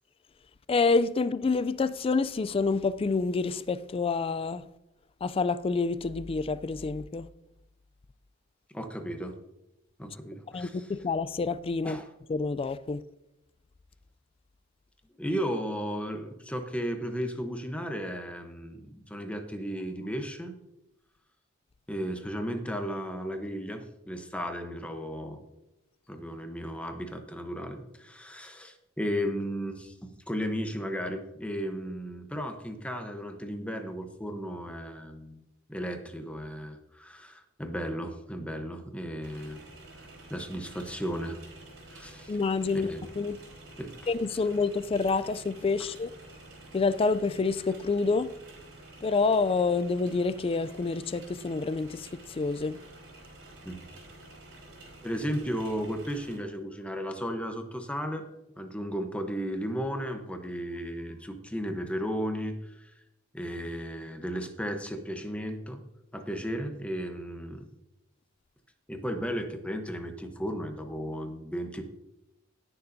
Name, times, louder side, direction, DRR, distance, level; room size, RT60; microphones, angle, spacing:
voice 1, 0.7-4.7 5.2-7.3 10.5-12.0 12.3-13.0 42.3-43.4 44.1-46.1 46.7-48.3 49.0-52.8, left 4 dB, 30° left, 0.3 m, -28 dB
voice 2, 8.7-9.4 10.0-10.7 11.8-12.1 15.2-20.5 21.9-25.4 26.1-35.4 35.7-39.6 40.3-41.4 41.9-42.3 42.9-43.0 43.8-44.1 53.6-53.8 55.0-58.2 58.6-62.9 63.3-65.8 66.1-67.7 68.9-71.8, equal, 5° left, 0.9 m, -35 dB
sound 1, 39.2-56.4, right 2 dB, 70° right, 3.9 m, -50 dB
18.0 x 6.8 x 2.7 m
head